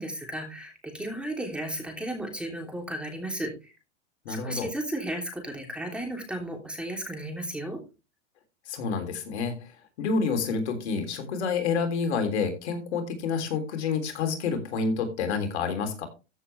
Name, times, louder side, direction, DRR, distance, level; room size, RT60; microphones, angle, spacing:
voice 1, 0.0-3.7 4.3-7.8, right 1 dB, 5° right, 3 dB, 3.1 m, -34 dB
voice 2, 4.2-4.7 8.7-9.7 10.0-16.0, left 5 dB, 65° left, 7 dB, 3.4 m, -28 dB
14.5 x 7.1 x 3.3 m, 0.29 s
hypercardioid pair, 130°, 36 cm